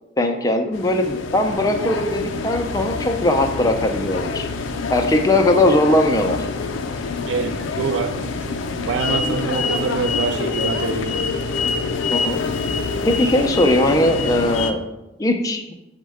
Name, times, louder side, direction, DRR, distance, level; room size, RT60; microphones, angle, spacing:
voice 1, 0.2-4.5 4.9-6.5 12.1-12.4 13.0-14.8 15.2-15.6, left 1 dB, 20° left, 0.4 m, -19 dB
sound 1, 0.7-14.7, left 4 dB, 80° left, 0.4 m, -26 dB
voice 2, 7.3-11.3, right 5 dB, 70° right, 0.4 m, -26 dB
5.2 x 2.1 x 4.7 m
head